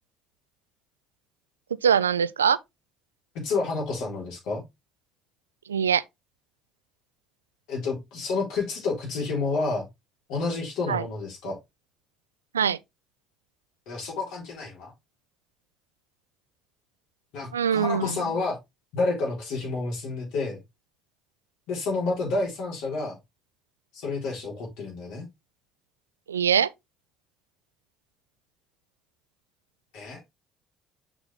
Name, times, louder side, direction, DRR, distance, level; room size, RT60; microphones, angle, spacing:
voice 1, 1.8-2.6 5.7-6.0 10.9-11.0 12.5-12.8 17.5-18.2 26.3-26.7, right 7 dB, 90° right, 0.3 m, -22 dB
voice 2, 3.4-4.6 7.7-9.9 10.3-11.6 13.9-14.9 17.3-18.6 18.9-20.6 21.7-23.2 23.9-25.3 29.9-30.2, left 3 dB, 70° left, 3.8 m, -29 dB
6.3 x 6.1 x 3.6 m
hypercardioid pair, 55°, 0 cm